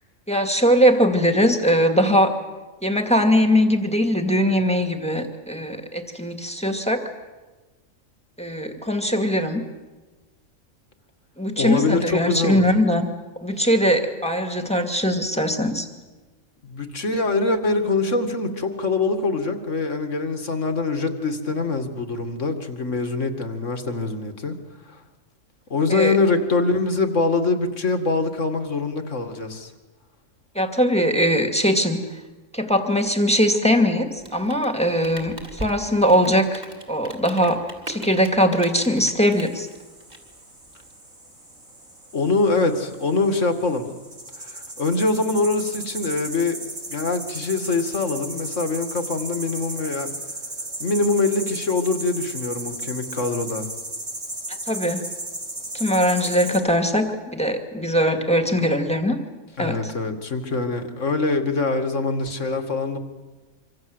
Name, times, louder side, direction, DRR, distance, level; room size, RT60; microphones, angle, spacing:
voice 1, 0.3-2.3 2.8-7.0 8.4-9.6 11.4-13.1 13.4-15.9 25.9-26.2 30.5-32.0 32.5-36.6 36.9-37.6 37.9-39.7 54.7-55.0 55.7-59.2 59.6-59.8, equal, 5° left, 5 dB, 2.3 m, -21 dB
voice 2, 11.6-12.6 16.6-24.5 24.9-25.0 25.7-29.7 42.1-43.9 44.4-46.6 46.9-50.1 50.8-53.7 59.6-63.0, left 3 dB, 60° left, 6 dB, 2.5 m, -24 dB
Rain, 34.1-40.9, equal, 30° right, 3.7 m, -40 dB
sound 1, 39.3-56.6, right 2 dB, 80° right, 5.5 m, -35 dB
26.0 x 25.5 x 8.0 m, 1.2 s
omnidirectional pair, 1.4 m